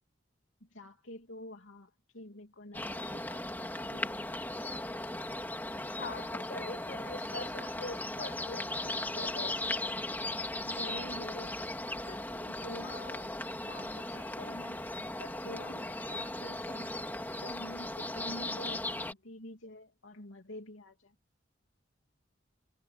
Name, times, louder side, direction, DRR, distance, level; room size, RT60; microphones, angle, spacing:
voice 1, 0.6-4.4 10.6-11.5 12.0-13.3 13.7-14.8 15.2-16.9 17.4-21.1, left 1 dB, 80° left, 3.0 m, -48 dB
sound 1, 2.7-19.1, left 1 dB, 10° left, 2.7 m, -37 dB
voice 2, 6.0-9.6, left 2 dB, 50° left, 5.7 m, -43 dB
head